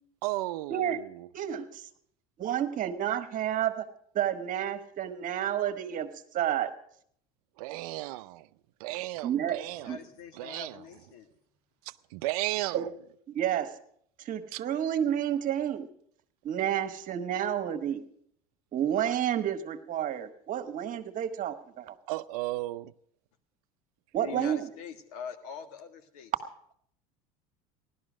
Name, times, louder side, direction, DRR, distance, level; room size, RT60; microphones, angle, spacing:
voice 1, 0.2-1.3 7.6-8.5 8.8-9.9 10.3-10.8 11.9-12.9 14.5-14.6 22.1-22.8, right 19 dB, 85° right, 0.6 m, -34 dB
voice 2, 1.3-1.9 2.4-3.8 4.1-6.1 6.3-6.7 9.2-9.6 9.9-10.0 12.7-12.9 13.3-13.7 14.2-15.9 16.4-18.0 18.7-21.9 24.1-24.7, right 10 dB, 45° right, 1.5 m, -30 dB
voice 3, 9.7-11.3 24.2-26.3, left 6 dB, 85° left, 1.6 m, -43 dB
15.0 x 12.0 x 6.2 m
supercardioid pair, 105°, 19 cm